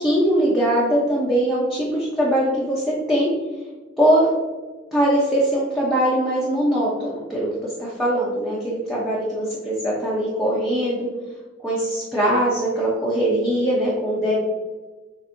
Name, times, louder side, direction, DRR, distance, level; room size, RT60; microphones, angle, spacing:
voice 1, 0.0-3.3 4.0-4.3 4.9-7.5 7.8-11.1 11.6-14.4, right 1 dB, ahead, -8 dB, 0.8 m, -21 dB
7.0 x 2.7 x 2.7 m, 1.3 s
head